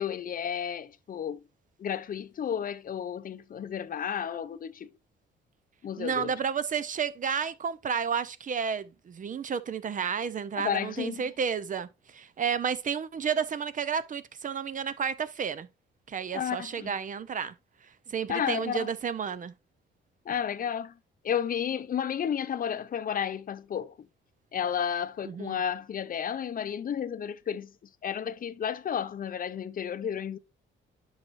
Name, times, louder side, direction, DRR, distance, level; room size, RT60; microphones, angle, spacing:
voice 1, 0.0-1.4 1.8-4.9 5.8-6.3 10.6-11.3 16.3-16.9 18.3-18.9 20.3-20.9 21.2-23.9 24.5-27.7 28.0-30.4, left 8 dB, 45° left, 0.6 m, -32 dB
voice 2, 6.0-15.7 16.1-17.5 18.1-19.5 25.3-25.6, right 7 dB, 40° right, 0.6 m, -31 dB
8.6 x 5.6 x 2.5 m
cardioid pair, 90°, 20 cm